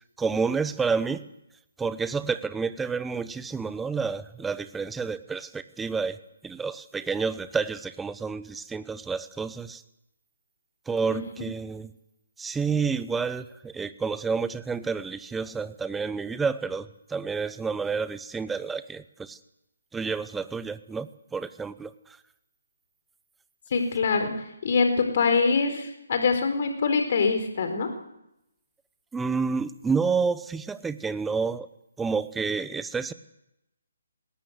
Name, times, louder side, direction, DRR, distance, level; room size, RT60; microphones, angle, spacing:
voice 1, 0.2-1.2 1.8-6.2 6.4-9.8 10.9-11.9 12.4-19.4 19.9-21.9 29.1-31.7 32.0-33.1, right 5 dB, 5° right, 13 dB, 0.9 m, -29 dB
voice 2, 23.7-24.3 24.6-27.9, left 4 dB, 50° left, 7 dB, 4.2 m, -24 dB
20.0 x 18.5 x 8.2 m, 0.85 s
hypercardioid pair, 150°, 0 cm